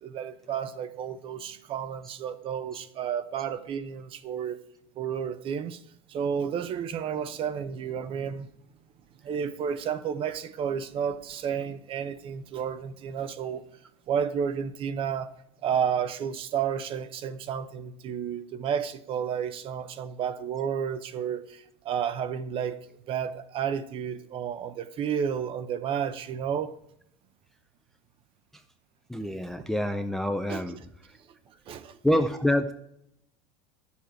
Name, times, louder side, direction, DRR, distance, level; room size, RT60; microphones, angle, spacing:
voice 1, 0.0-4.6 5.0-5.8 6.1-8.5 9.2-13.6 14.1-15.3 15.6-22.8 23.1-26.7 30.5-30.8 31.7-32.0, right 8 dB, 35° right, 0.7 m, -31 dB
voice 2, 29.1-30.8 32.0-32.7, left 1 dB, ahead, 0.4 m, -26 dB
9.8 x 7.1 x 4.5 m
supercardioid pair, 140°, 16 cm